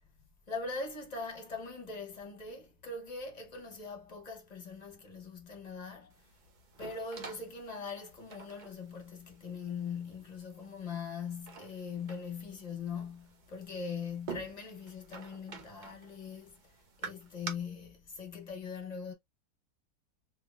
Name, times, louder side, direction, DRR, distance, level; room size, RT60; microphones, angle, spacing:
voice 1, 0.5-6.3 6.7-16.7 17.0-19.1, left 5 dB, 35° left, 0.7 m, -41 dB
sound 1, 6.1-17.5, right 5 dB, 85° right, 0.4 m, -49 dB
3.6 x 2.7 x 2.3 m
omnidirectional pair, 1.7 m